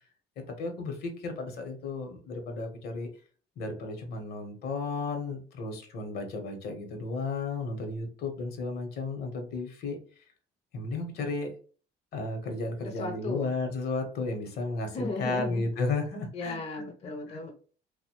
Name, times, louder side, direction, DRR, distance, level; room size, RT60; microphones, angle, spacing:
voice 1, 0.6-3.1 3.6-10.0 10.7-11.5 12.1-16.8 17.3-17.4, left 3 dB, 65° left, 5 dB, 0.8 m, -33 dB
voice 2, 13.0-13.5 14.9-15.7 16.3-17.5, left 3 dB, 40° left, 3 dB, 0.5 m, -36 dB
2.7 x 2.1 x 2.8 m, 0.40 s
cardioid pair, 110°, 17 cm